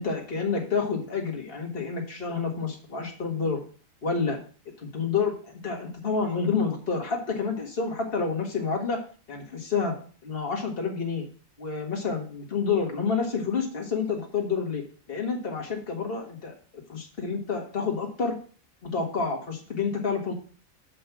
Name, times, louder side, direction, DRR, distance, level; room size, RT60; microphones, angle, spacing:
voice 1, 0.0-3.6 4.0-4.4 4.8-9.0 9.3-10.0 10.2-11.3 11.6-16.5 16.9-18.4 18.8-20.3, left 5 dB, 45° left, 1 dB, 1.9 m, -29 dB
6.9 x 5.3 x 5.9 m, 0.40 s
omnidirectional pair, 1.4 m